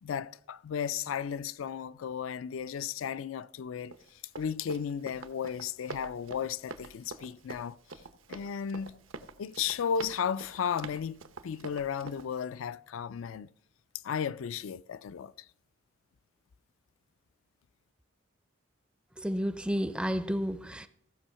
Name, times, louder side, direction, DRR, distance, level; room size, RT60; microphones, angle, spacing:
voice 1, 0.0-3.9 4.4-7.8 8.3-9.0 9.4-13.5 14.0-15.3, left 7 dB, 75° left, 0.4 m, -34 dB
Run, 3.9-12.4, right 3 dB, 75° right, 0.8 m, -46 dB
voice 2, 19.2-20.9, equal, 5° right, 0.4 m, -31 dB
15.5 x 6.2 x 5.6 m
head